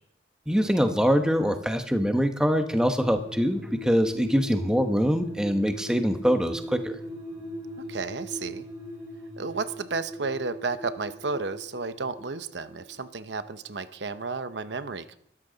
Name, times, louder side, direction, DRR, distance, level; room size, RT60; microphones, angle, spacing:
voice 1, 0.5-7.0, equal, 5° right, 6 dB, 1.0 m, -24 dB
sound 1, 2.7-13.5 13.7-13.8, left 1 dB, 20° right, 4.4 m, -40 dB
voice 2, 7.9-8.6 9.4-15.2, right 4 dB, 80° right, 11 dB, 0.8 m, -32 dB
22.0 x 13.5 x 4.0 m, 0.71 s
head